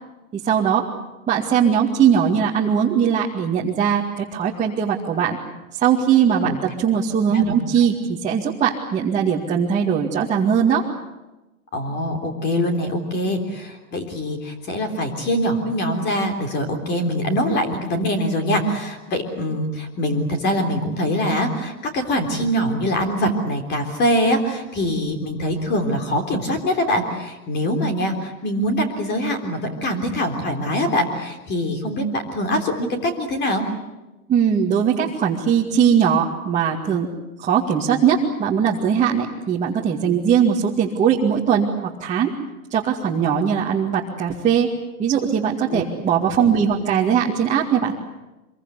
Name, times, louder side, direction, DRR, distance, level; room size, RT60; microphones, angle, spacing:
voice 1, 0.3-0.9 1.3-5.4 5.7-10.8 34.3-37.1 37.4-42.3 42.7-44.7 45.0-47.9, right 7 dB, 15° right, -4 dB, 2.2 m, -20 dB
voice 2, 11.7-33.6 45.7-45.8 46.4-46.5, equal, 25° left, 6 dB, 3.7 m, -23 dB
25.5 x 22.5 x 8.3 m, 1.0 s
hypercardioid pair, 150°, 43 cm